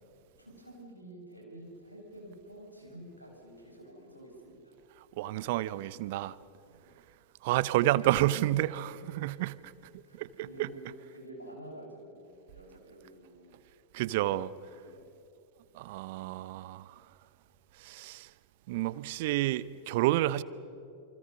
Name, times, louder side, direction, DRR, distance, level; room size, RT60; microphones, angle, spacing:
voice 1, 0.4-4.8 6.6-7.0 10.0-13.5 14.7-15.1, right 1 dB, 90° left, 0 dB, 5.8 m, -49 dB
voice 2, 5.2-6.4 7.4-9.6 10.1-10.7 13.9-14.5 15.7-16.9 17.8-18.3 18.7-20.4, right 15 dB, 50° right, 19 dB, 0.6 m, -30 dB
27.5 x 25.0 x 5.5 m, 2.7 s
figure-of-eight pair, 90°, 0 cm